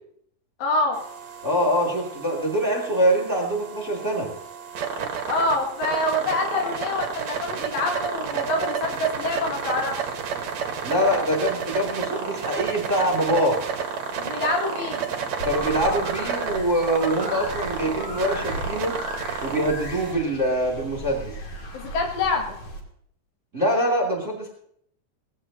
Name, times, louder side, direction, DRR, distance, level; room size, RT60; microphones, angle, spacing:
voice 1, 0.6-1.0 5.3-10.0 14.2-15.1 21.7-22.6, left 2 dB, 75° left, 1 dB, 4.4 m, -26 dB
sound 1, 0.9-20.1, right 6 dB, 55° right, 2.1 m, -31 dB
voice 2, 1.4-4.3 10.8-13.6 15.4-18.9 19.4-21.3 23.5-24.5, equal, 20° right, 0 dB, 2.5 m, -24 dB
sound 2, 15.4-22.8, left 1 dB, 45° left, 2.8 m, -36 dB
19.0 x 16.0 x 2.9 m, 0.67 s
omnidirectional pair, 5.0 m